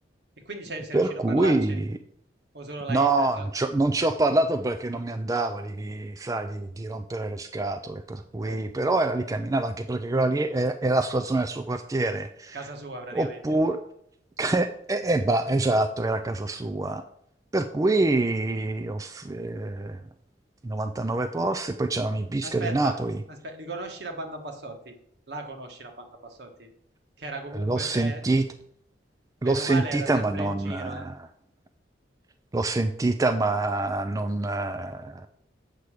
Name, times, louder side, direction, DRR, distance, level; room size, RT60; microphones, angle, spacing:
voice 1, 0.4-1.8 2.5-3.5 8.3-8.6 12.5-13.4 22.4-23.0 23.3-24.9 25.3-26.7 27.2-28.2 29.4-31.1, right 2 dB, 65° right, 4 dB, 1.5 m, -37 dB
voice 2, 0.9-1.9 2.9-12.6 13.1-13.8 14.4-17.0 17.5-20.0 20.6-23.2 27.5-28.5 29.4-31.1 32.5-35.3, right 2 dB, 20° right, 9 dB, 0.4 m, -26 dB
8.2 x 6.1 x 4.9 m, 0.72 s
head